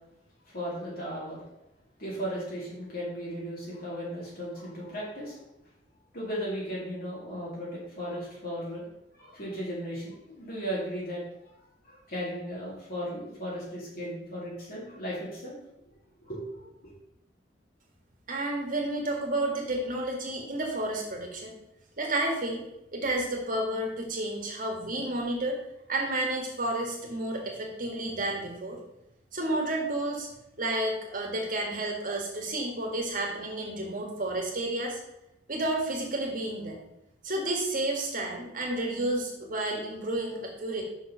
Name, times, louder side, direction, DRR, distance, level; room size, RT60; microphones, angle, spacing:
voice 1, 0.5-1.4 2.0-5.4 6.1-8.9 9.1-11.6 11.8-15.6 16.2-16.9, equal, 55° left, -6 dB, 2.3 m, -36 dB
voice 2, 18.3-21.5 22.0-22.6 22.9-25.6 25.9-28.8 29.3-30.3 30.6-35.0 35.5-36.8 37.2-40.8, right 1 dB, 45° right, 0 dB, 1.7 m, -31 dB
5.7 x 4.7 x 5.5 m, 0.85 s
head